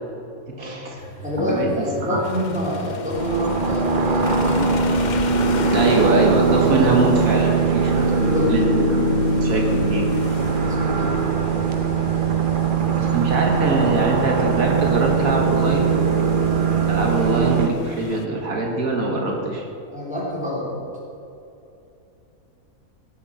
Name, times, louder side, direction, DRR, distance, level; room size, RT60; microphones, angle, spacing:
voice 1, 0.6-1.0 1.4-1.7 2.0-2.2 5.7-8.1 8.5-8.6 8.9-10.1 13.0-15.9 16.9-19.6, right 2 dB, 75° right, 0 dB, 1.9 m, -23 dB
sound 1, 1.0-17.0, equal, 65° left, 3.1 m, -38 dB
voice 2, 1.2-4.8 7.9-8.7 10.6-11.3 16.9-17.1 19.9-20.8, left 1 dB, 5° right, -5 dB, 3.3 m, -27 dB
sound 2, 2.2-18.3, left 6 dB, 90° left, 0.4 m, -36 dB
sound 3, 3.1-17.7, right 5 dB, 45° right, 0.8 m, -20 dB
15.5 x 7.2 x 6.3 m, 2.8 s
omnidirectional pair, 1.5 m